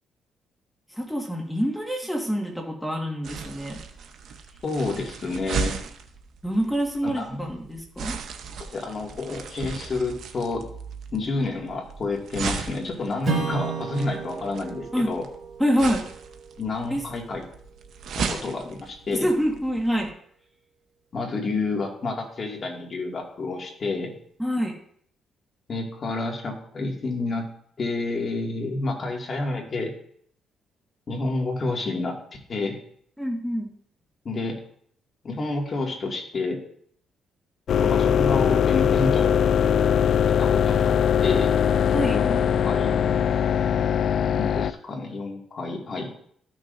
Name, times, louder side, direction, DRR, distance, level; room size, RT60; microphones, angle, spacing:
voice 1, 0.9-3.8 6.4-8.1 14.9-15.1 15.6-16.0 16.9-17.0 19.1-20.1 24.4-24.7 33.2-33.7 41.9-42.2, equal, 5° left, 1 dB, 1.7 m, -26 dB
sound 1, 3.2-20.1, right 5 dB, 70° right, 0.9 m, -36 dB
voice 2, 4.6-5.8 7.0-7.4 8.6-10.7 11.1-15.2 16.6-17.4 18.2-19.3 21.1-24.1 25.7-27.5 27.8-29.9 31.1-32.2 32.5-32.8 34.2-34.6 35.2-36.6 37.8-39.4 40.4-40.9 41.2-41.5 42.1-43.0 44.4-46.1, left 3 dB, 45° left, 0 dB, 2.2 m, -29 dB
Strum, 13.2-18.2, right 5 dB, 45° right, 2.1 m, -34 dB
sound 2, 37.7-44.7, left 8 dB, 65° left, 0.3 m, -21 dB
14.0 x 6.2 x 2.6 m, 0.63 s
cardioid pair, 90°, 0 cm